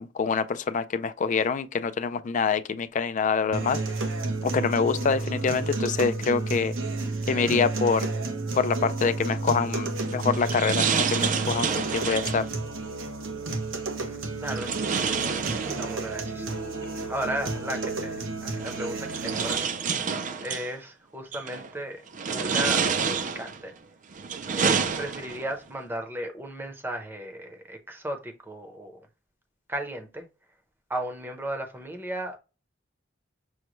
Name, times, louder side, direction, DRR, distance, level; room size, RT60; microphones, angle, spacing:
voice 1, 0.0-3.8 4.4-6.7 7.3-8.1 8.5-12.5, left 5 dB, 40° left, 0.4 m, -26 dB
sound 1, 3.5-19.5, right 3 dB, 90° right, 0.9 m, -31 dB
sound 2, 10.0-12.5 14.5-16.2 17.5-17.6 18.6-20.7 21.3-21.7 22.1-23.6 24.1-25.5, right 6 dB, 40° right, 0.4 m, -28 dB
voice 2, 14.0-16.6 17.1-20.1 20.4-22.0 22.3-23.7 24.5-29.1 29.7-30.3 30.9-32.4, right 1 dB, 10° right, 0.7 m, -35 dB
6.3 x 2.2 x 3.0 m
head